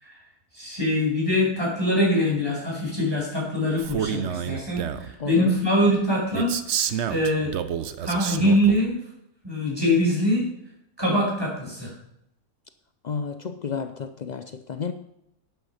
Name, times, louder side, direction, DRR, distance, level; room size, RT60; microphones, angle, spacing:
voice 1, 0.5-7.5 8.0-9.0 9.4-10.5 11.0-11.9, left 1 dB, 15° right, 5.4 m, -23 dB
Male speech man speaking, 3.8-5.1 6.4-8.8, right 8 dB, 55° right, 0.9 m, -29 dB
voice 2, 5.2-5.6 13.0-14.9, left 6 dB, 75° left, 0.4 m, -31 dB
11.5 x 9.2 x 5.7 m
omnidirectional pair, 1.6 m